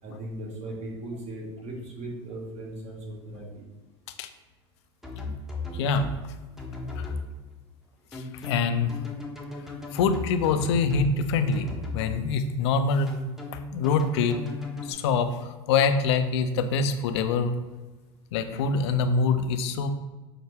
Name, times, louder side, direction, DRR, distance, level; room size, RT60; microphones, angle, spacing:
voice 1, 0.0-3.6, right 1 dB, 45° right, -2 dB, 1.4 m, -38 dB
sound 1, 5.0-6.2 6.6-7.2 8.1-11.1 11.5-12.2 13.1-14.9, left 2 dB, 5° right, 0.7 m, -36 dB
voice 2, 5.7-6.1 7.0-7.1 8.1-8.9 9.9-13.2 13.7-14.4 14.9-17.5 18.3-19.9, left 4 dB, 70° left, 9 dB, 0.4 m, -25 dB
5.6 x 2.1 x 3.3 m, 1.2 s
hypercardioid pair, 85°, 15 cm